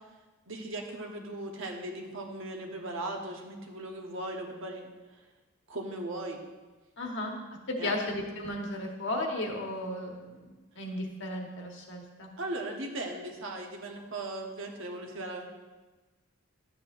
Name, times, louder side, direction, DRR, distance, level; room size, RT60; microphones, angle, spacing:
voice 1, 0.5-5.2 5.7-6.4 7.8-7.9 12.4-15.4, right 2 dB, 65° right, 1 dB, 1.2 m, -38 dB
voice 2, 7.0-7.4 7.7-12.3, left 1 dB, 60° left, 1 dB, 1.3 m, -35 dB
12.0 x 7.9 x 2.6 m, 1.2 s
head